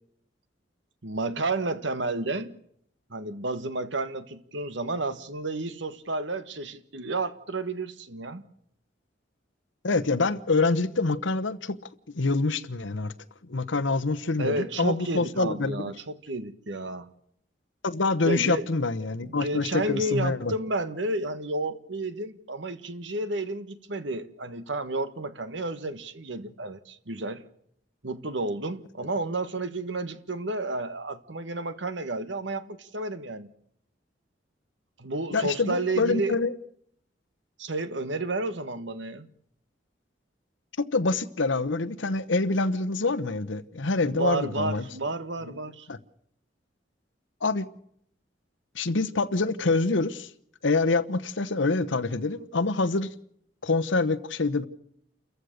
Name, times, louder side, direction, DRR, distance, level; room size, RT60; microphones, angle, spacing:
voice 1, 1.0-2.5 3.1-8.4 14.4-17.1 18.2-18.7 19.2-27.4 28.0-33.5 35.0-36.3 37.6-39.3 44.0-45.9, right 2 dB, 75° right, 1.4 m, -31 dB
voice 2, 9.8-11.8 12.1-13.1 13.4-15.9 17.8-20.5 35.3-36.5 40.8-44.9 45.9-46.0 47.4-47.7 48.7-50.3 50.6-53.1 53.6-54.6, left 3 dB, 80° left, 1.0 m, -26 dB
29.0 x 15.0 x 6.6 m
head